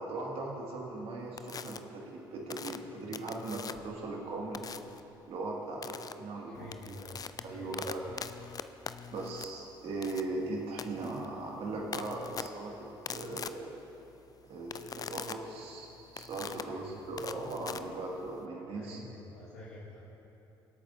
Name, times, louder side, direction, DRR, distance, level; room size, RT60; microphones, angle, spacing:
voice 1, 0.0-4.6 5.3-7.0 7.4-8.0 9.1-13.8 14.5-19.0, right 2 dB, 55° right, -2 dB, 2.1 m, -39 dB
sound 1, 1.4-1.8 2.5-4.0 4.5-5.0 5.8-6.1 6.6-18.5, left 6 dB, 30° left, 0.4 m, -43 dB
voice 2, 6.5-8.1 16.6-17.0 18.7-20.0, left 1 dB, 65° left, -8 dB, 1.8 m, -48 dB
24.5 x 8.7 x 2.7 m, 3.0 s
figure-of-eight pair, 50°, 12 cm